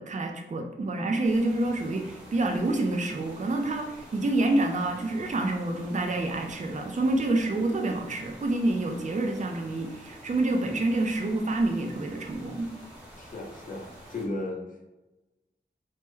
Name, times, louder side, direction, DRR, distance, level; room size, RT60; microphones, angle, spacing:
voice 1, 0.0-12.7, right 2 dB, 40° right, 3 dB, 0.4 m, -27 dB
sound 1, 1.2-14.3, equal, 5° right, 1.0 m, -48 dB
voice 2, 13.2-14.6, left 2 dB, 45° left, 0 dB, 0.6 m, -35 dB
3.4 x 2.0 x 3.0 m, 1.0 s
wide cardioid pair, 75°, 20 cm